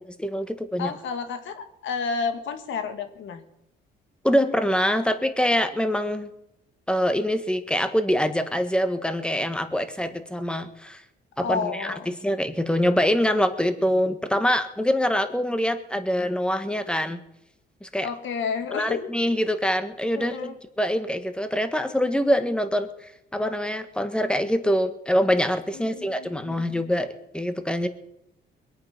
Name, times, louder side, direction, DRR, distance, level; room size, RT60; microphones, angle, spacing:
voice 1, 0.2-0.9 4.2-6.3 6.9-11.0 11.4-17.2 17.8-18.1 18.7-22.9 23.3-27.1 27.3-27.9, equal, 5° left, 9 dB, 1.6 m, -24 dB
voice 2, 0.8-3.4 11.4-12.1 18.0-19.1 20.1-20.6 25.7-26.6, left 5 dB, 75° left, 8 dB, 2.0 m, -31 dB
22.0 x 8.9 x 6.0 m, 0.83 s
cardioid pair, 90°, 20 cm